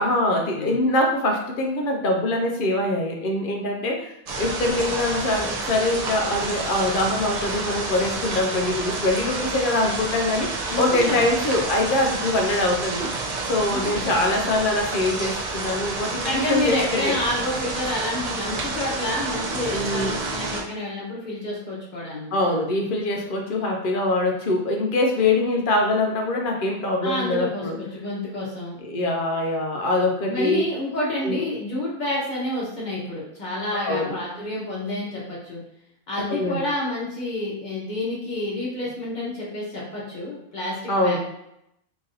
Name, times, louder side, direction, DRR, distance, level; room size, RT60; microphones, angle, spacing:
voice 1, 0.0-13.1 13.5-17.2 19.7-20.1 22.3-27.8 28.8-30.6 31.2-31.4 33.8-34.2 36.3-36.6 40.9-41.2, left 2 dB, 55° left, 1 dB, 0.6 m, -23 dB
sound 1, 4.3-20.6, right 3 dB, 55° right, 0.4 m, -29 dB
voice 2, 10.6-11.2 13.7-14.2 16.2-22.3 27.0-28.8 30.3-35.6 36.1-41.2, left 1 dB, 35° left, -5 dB, 1.1 m, -29 dB
3.1 x 2.7 x 3.8 m, 0.78 s
omnidirectional pair, 1.4 m